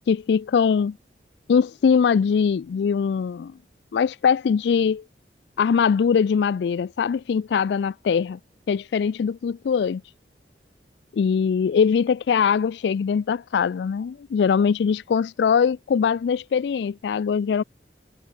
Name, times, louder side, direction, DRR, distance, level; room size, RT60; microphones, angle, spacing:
voice 1, 0.1-0.9 1.5-3.5 3.9-5.0 5.6-8.4 8.7-10.0 11.1-17.6, left 6 dB, 75° left, 0.3 m, -22 dB
head